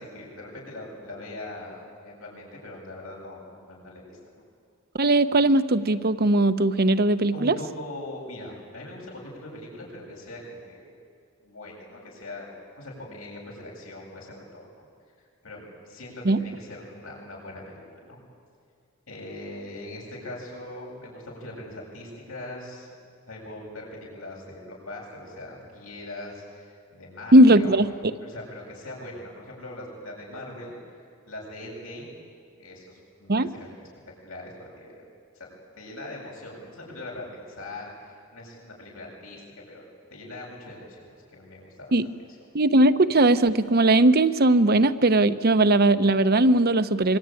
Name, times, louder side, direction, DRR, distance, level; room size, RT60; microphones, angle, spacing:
voice 1, 0.0-4.4 7.3-10.9 11.4-14.8 15.4-18.2 19.1-22.9 23.3-27.8 28.2-30.7 31.3-32.1 32.6-33.9 34.2-35.0 35.3-35.5 35.7-39.8 40.1-42.3, left 1 dB, 85° left, -2 dB, 7.8 m, -41 dB
voice 2, 5.0-7.6 16.3-16.4 27.3-27.9 33.3-33.5 41.9-42.1 42.5-47.2, right 1 dB, 50° right, 12 dB, 0.9 m, -19 dB
25.5 x 23.0 x 9.2 m, 2.2 s
head